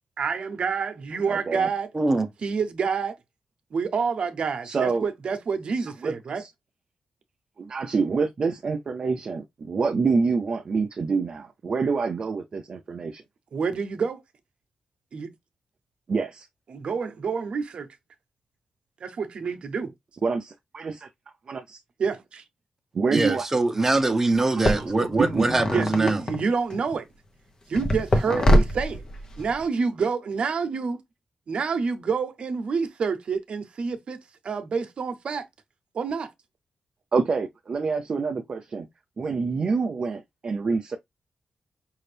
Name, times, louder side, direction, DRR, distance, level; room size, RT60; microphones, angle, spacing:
voice 1, 0.2-1.9 2.4-3.1 3.7-6.4 13.5-14.2 15.1-15.3 16.7-17.9 19.0-19.9 22.0-22.1 25.7-27.0 27.7-29.0 29.4-31.0 31.5-34.2 34.4-35.4 35.9-36.3, right 5 dB, 60° right, 0.8 m, -28 dB
voice 2, 1.3-1.7 4.6-5.1 5.8-6.5 7.6-13.2 16.1-16.5 20.2-20.9 21.5-21.6 22.9-23.5 23.8-23.9 24.6-25.5 37.1-38.9 39.2-41.0, right 4 dB, 45° right, 0.5 m, -27 dB
voice 3, 1.9-2.3 23.1-26.2, right 2 dB, 20° right, 0.8 m, -23 dB
sound 1, 23.8-23.9 24.6-26.9 27.7-29.6, equal, 35° left, 0.9 m, -24 dB
5.4 x 2.5 x 3.3 m
wide cardioid pair, 135°, 2 cm